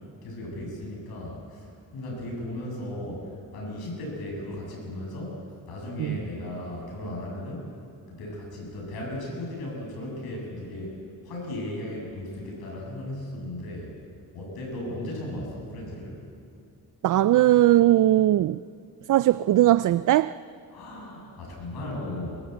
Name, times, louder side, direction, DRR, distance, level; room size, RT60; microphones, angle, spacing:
voice 1, 0.2-1.6 1.9-5.4 5.7-7.7 8.1-10.9 11.2-13.9 14.3-16.2 20.7-22.4, left 1 dB, 90° left, 8.0 m, -36 dB
voice 2, 17.0-18.6 19.1-20.3, right 14 dB, 60° right, 0.5 m, -19 dB
22.5 x 22.5 x 8.1 m
cardioid pair, 100°, 36 cm